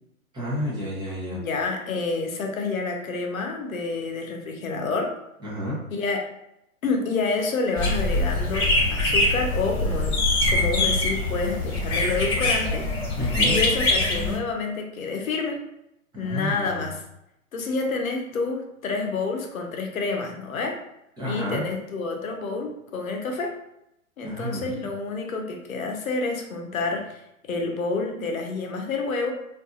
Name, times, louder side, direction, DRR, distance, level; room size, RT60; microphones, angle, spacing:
voice 1, 0.3-1.4 5.4-5.8 13.2-13.6 16.1-16.9 21.2-21.7 24.2-24.7, equal, 10° right, -7 dB, 0.7 m, -30 dB
voice 2, 1.3-5.1 5.9-6.3 6.8-10.2 10.5-12.9 13.5-15.6 16.2-17.0 17.5-20.8 21.3-23.5 24.2-27.2 27.5-29.3, left 3 dB, 80° left, 2 dB, 0.7 m, -28 dB
sound 1, 7.7-14.4, left 2 dB, 10° left, 0.9 m, -23 dB
2.6 x 2.6 x 2.3 m, 0.82 s
hypercardioid pair, 130°, 41 cm